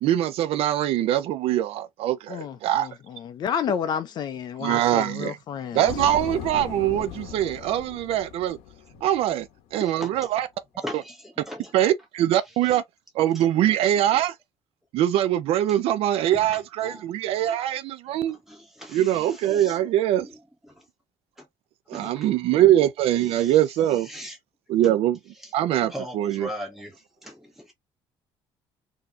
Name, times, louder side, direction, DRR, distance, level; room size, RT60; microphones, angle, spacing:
voice 1, 0.0-2.9 4.6-5.4 5.7-8.6 9.0-9.4 9.7-10.5 11.7-12.8 13.2-14.3 14.9-18.4 18.9-20.3 21.9-24.1 24.7-25.2 25.5-26.5, right 12 dB, 60° right, 0.4 m, -23 dB
voice 2, 2.3-5.9, left 8 dB, 40° left, 0.5 m, -30 dB
sound 1, 5.9-9.6, left 9 dB, 75° left, 0.8 m, -38 dB
voice 3, 10.8-11.1 11.5-11.7 13.3-13.5 14.1-14.2 16.3-17.1 17.4-17.6 18.3-19.8 20.2-20.4 20.7-20.8 21.4-21.5 21.9-22.3 23.3-23.6 24.0-24.4 24.8-24.9 25.4-25.5 25.9-27.7, equal, 5° right, 1.5 m, -39 dB
4.1 x 2.8 x 2.4 m
cardioid pair, 180°, 11 cm